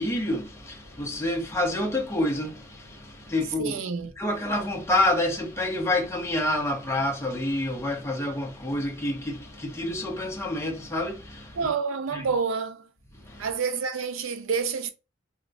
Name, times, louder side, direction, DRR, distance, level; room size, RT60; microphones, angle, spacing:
voice 1, 0.0-3.7 4.2-11.7 12.1-12.2 13.1-13.5, left 1 dB, 15° left, 0.5 m, -28 dB
voice 2, 3.6-4.1 11.5-12.9 13.4-14.9, right 5 dB, 85° right, 0.5 m, -28 dB
3.1 x 2.0 x 2.5 m
head